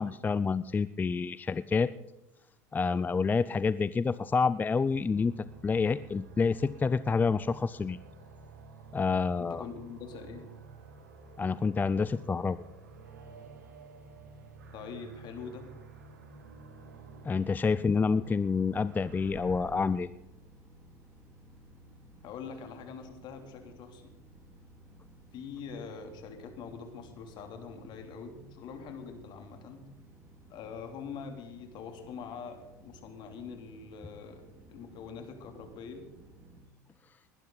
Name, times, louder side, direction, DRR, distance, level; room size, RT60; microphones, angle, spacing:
voice 1, 0.0-1.9 2.7-5.3 5.6-8.0 8.9-9.6 11.4-12.6 17.2-20.1, left 5 dB, 20° left, 16 dB, 0.4 m, -28 dB
sound 1, 4.8-19.9, right 4 dB, 90° right, 2.1 m, -50 dB
voice 2, 9.4-10.5 14.7-15.7 22.2-24.1 25.3-29.8 30.5-36.1, left 6 dB, 55° left, 6 dB, 3.0 m, -44 dB
sound 2, 18.9-36.6, right 1 dB, 30° right, 3.9 m, -56 dB
20.0 x 11.5 x 4.0 m, 0.95 s
hypercardioid pair, 80°, 9 cm